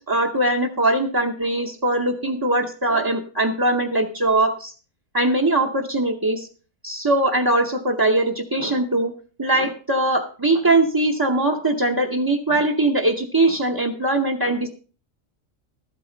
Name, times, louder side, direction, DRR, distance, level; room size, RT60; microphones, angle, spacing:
voice 1, 0.1-4.7 5.1-6.5 6.8-9.1 9.4-14.7, right 2 dB, 20° right, 0 dB, 0.7 m, -21 dB
13.0 x 8.4 x 5.1 m, 0.37 s
omnidirectional pair, 1.4 m